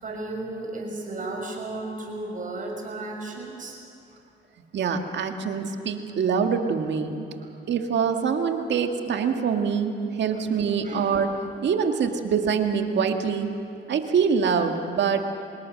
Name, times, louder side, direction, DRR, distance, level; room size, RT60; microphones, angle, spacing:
voice 1, 0.0-3.8 7.4-7.5 10.3-10.4 10.8-11.2, right 2 dB, 40° right, 0 dB, 6.4 m, -34 dB
voice 2, 4.7-7.2 7.7-11.3 11.6-13.5 13.9-15.2, right 6 dB, 65° right, 5 dB, 1.9 m, -24 dB
25.0 x 20.5 x 6.4 m, 2.6 s
cardioid pair, 90°, 20 cm